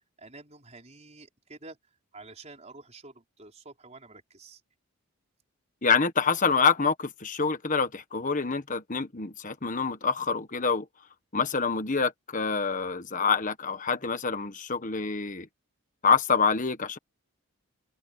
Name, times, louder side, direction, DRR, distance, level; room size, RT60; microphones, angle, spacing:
voice 1, 0.2-1.8 2.1-4.6, right 3 dB, 30° right, 5.0 m, -49 dB
voice 2, 5.8-10.9 11.3-15.5 16.0-17.0, left 5 dB, 35° left, 1.4 m, -26 dB
open air
head